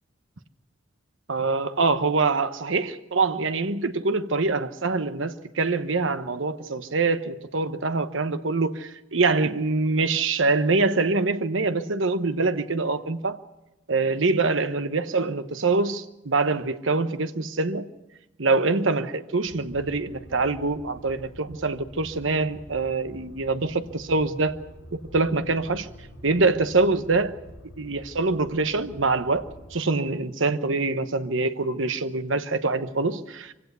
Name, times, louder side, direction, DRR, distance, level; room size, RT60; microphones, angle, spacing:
voice 1, 1.3-13.4 13.9-17.9 18.4-24.6 24.9-25.9 26.2-27.4 27.8-33.5, right 3 dB, 75° right, 1.1 m, -24 dB
sound 1, 19.5-29.8, equal, 85° left, 5.3 m, -46 dB
24.5 x 16.5 x 6.9 m
head